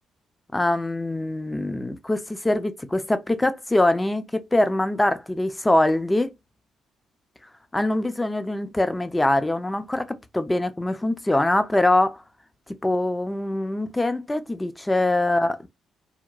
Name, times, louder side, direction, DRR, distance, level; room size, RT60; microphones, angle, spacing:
voice 1, 0.5-6.3 7.7-12.2 12.7-15.7, left 1 dB, 15° left, 0.5 m, -23 dB
2.8 x 2.1 x 2.4 m
figure-of-eight pair, 45°, 0 cm